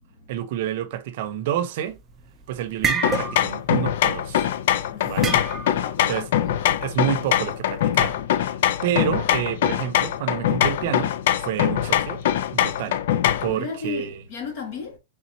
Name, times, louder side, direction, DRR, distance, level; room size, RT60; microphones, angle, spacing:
voice 1, 0.3-2.0 2.5-4.5 5.1-5.4 6.1-6.3 6.8-8.2 8.8-11.1 11.4-12.2 12.5-13.0 13.4-14.2, right 10 dB, 55° right, 0.7 m, -28 dB
sound 1, 1.9-2.3 2.6-3.7 3.9-4.2 5.2-5.9, right 5 dB, 15° right, 0.5 m, -27 dB
sound 2, 3.0-13.6, left 11 dB, 65° left, 0.4 m, -23 dB
voice 2, 4.9-5.2 5.8-6.6 13.5-15.0, left 5 dB, 45° left, 1.6 m, -35 dB
4.2 x 3.7 x 2.7 m
supercardioid pair, 165°, 0 cm